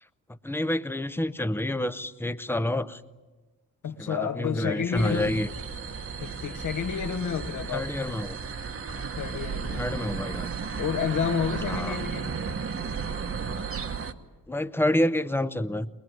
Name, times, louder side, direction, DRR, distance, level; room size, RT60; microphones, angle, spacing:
voice 1, 0.4-3.0 4.0-5.5 7.7-8.4 9.8-10.5 11.7-12.0 14.5-15.9, left 1 dB, 5° left, 0.7 m, -28 dB
voice 2, 3.8-5.4 6.2-7.9 8.9-9.8 10.8-12.3, left 7 dB, 60° left, 1.8 m, -30 dB
sound 1, 4.9-14.1, right 5 dB, 40° right, 1.2 m, -34 dB
22.0 x 21.5 x 9.4 m
cardioid pair, 120°, 35 cm